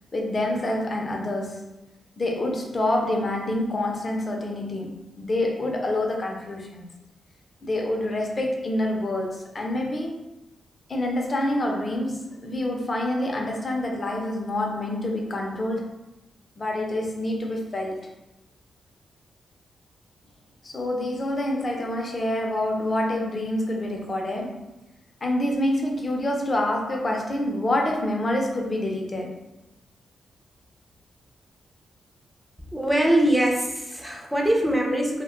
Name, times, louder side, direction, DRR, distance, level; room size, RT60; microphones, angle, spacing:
voice 1, 0.1-1.7 2.2-6.9 7.6-10.2 10.9-15.9 16.6-18.0 20.6-24.7 25.2-29.4, left 1 dB, 35° left, 0.6 m, -27 dB
voice 2, 32.7-35.2, right 1 dB, 5° right, 0.6 m, -22 dB
2.1 x 2.1 x 3.6 m
cardioid pair, 85°, 0 cm